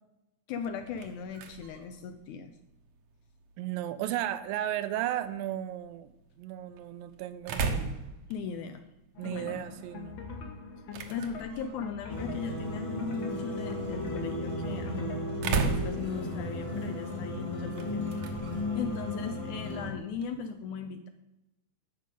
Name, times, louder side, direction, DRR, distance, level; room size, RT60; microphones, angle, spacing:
voice 1, 0.5-2.5 8.3-8.8 9.2-9.7 11.1-18.4 18.7-21.1, left 6 dB, 80° left, 8 dB, 1.8 m, -38 dB
sound 1, 0.6-20.4, right 4 dB, 65° right, 1.8 m, -40 dB
voice 2, 3.6-6.1 6.4-8.0 9.2-10.2, right 12 dB, 85° right, 12 dB, 2.4 m, -34 dB
sound 2, 9.2-15.4, left 5 dB, 55° left, 1.4 m, -44 dB
Mystery of the Dark Forest, 12.1-19.9, left 1 dB, 20° left, 0.9 m, -35 dB
12.0 x 5.2 x 8.3 m, 0.92 s
omnidirectional pair, 4.0 m